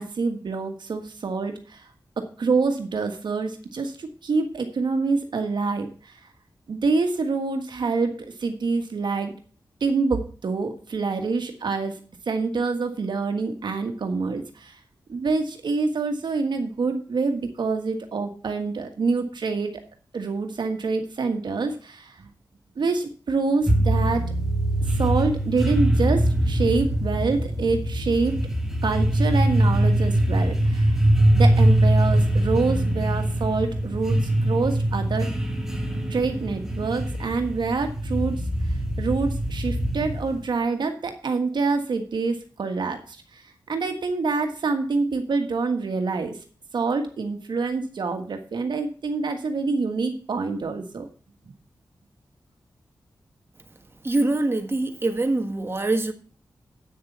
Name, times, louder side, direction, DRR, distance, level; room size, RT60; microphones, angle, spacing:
voice 1, 0.0-1.8 2.2-6.1 6.7-9.3 9.8-12.0 12.3-14.8 15.1-19.8 20.1-22.3 22.8-24.3 24.9-28.4 28.8-30.9 31.3-35.3 36.1-38.4 39.0-43.4 43.7-46.4 46.7-51.1, right 4 dB, 75° right, 1.5 m, -26 dB
sound 1, 23.7-40.5, right 1 dB, 5° right, 2.1 m, -22 dB
voice 2, 54.0-56.1, right 2 dB, 30° right, 1.5 m, -24 dB
8.7 x 6.8 x 6.7 m
wide cardioid pair, 75°, 8 cm